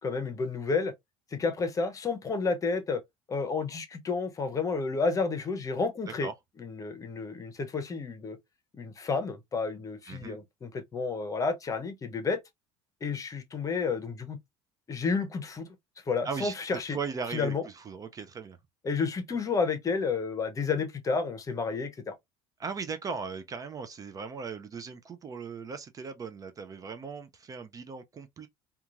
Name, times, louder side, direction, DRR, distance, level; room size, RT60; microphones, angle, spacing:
voice 1, 0.0-0.9 1.3-3.0 3.3-6.3 6.6-8.4 8.7-12.4 13.0-14.4 14.9-15.7 16.1-17.0 17.3-17.7 18.8-22.1, left 4 dB, 25° left, 0.7 m, -31 dB
voice 2, 10.1-10.4 16.2-16.5 16.9-18.6 22.6-28.5, right 5 dB, 30° right, 0.4 m, -38 dB
2.9 x 2.3 x 2.4 m
supercardioid pair, 110°, 12 cm